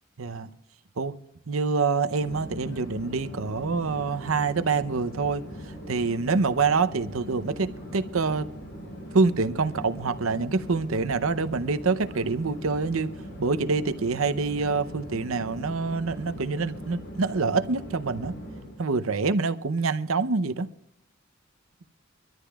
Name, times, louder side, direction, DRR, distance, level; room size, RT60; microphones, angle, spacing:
voice 1, 0.2-0.5 1.0-1.2 1.5-5.4 5.9-8.5 9.1-13.1 13.4-18.3 18.8-20.7, right 4 dB, 80° right, 0.7 m, -26 dB
Conversation / Chatter / Fixed-wing aircraft airplane, 2.2-18.9, equal, 60° left, 4.7 m, -41 dB
23.5 x 13.5 x 2.4 m
head